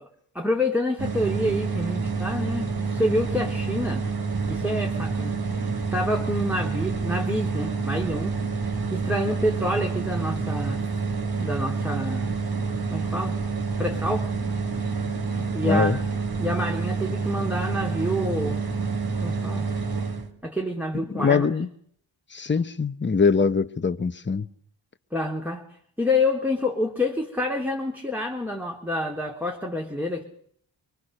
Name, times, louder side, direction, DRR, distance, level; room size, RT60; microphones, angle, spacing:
voice 1, 0.3-4.0 4.5-5.3 5.9-8.3 8.9-10.8 11.4-12.3 12.9-13.4 13.8-14.3 15.5-16.0 16.4-18.6 19.2-19.7 20.4-21.4 25.1-25.6 26.0-30.2, left 1 dB, 5° right, 3.1 m, -27 dB
sound 1, 1.0-20.3, right 4 dB, 45° right, 3.7 m, -28 dB
voice 2, 15.6-16.0 21.1-21.7 22.3-24.5, left 5 dB, 25° left, 1.1 m, -23 dB
24.5 x 24.5 x 6.6 m
cardioid pair, 85°, 49 cm